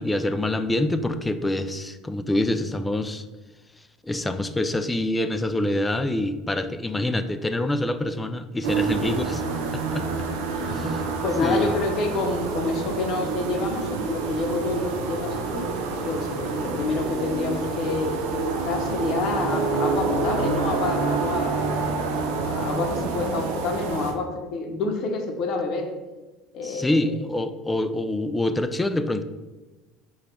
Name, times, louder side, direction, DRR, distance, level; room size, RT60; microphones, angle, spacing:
voice 1, 0.0-3.3 4.0-9.4 9.7-10.1 10.7-11.1 11.4-11.7 26.6-29.2, left 1 dB, 15° left, 10 dB, 0.3 m, -26 dB
sound 1, 8.6-24.1, right 4 dB, 80° right, 0.6 m, -27 dB
voice 2, 10.5-10.9 11.2-15.7 16.1-21.8 22.4-25.9 26.5-27.2, left 3 dB, 55° left, 4 dB, 0.7 m, -28 dB
5.0 x 2.3 x 4.3 m, 1.2 s
supercardioid pair, 85°, 0 cm